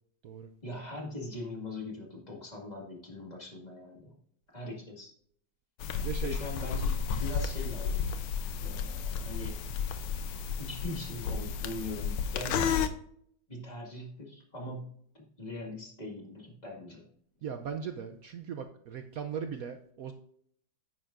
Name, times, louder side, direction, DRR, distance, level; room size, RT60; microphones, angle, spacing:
voice 1, 0.6-4.1 4.5-5.1 6.2-8.0 8.6-9.6 10.6-12.9 13.5-17.1, left 1 dB, 20° left, -1 dB, 1.8 m, -41 dB
sound 1, 5.8-12.9, left 6 dB, 90° left, 1.5 m, -32 dB
voice 2, 6.0-6.4 17.4-20.1, right 7 dB, 80° right, 7 dB, 0.8 m, -38 dB
10.5 x 9.0 x 2.5 m, 0.65 s
omnidirectional pair, 2.2 m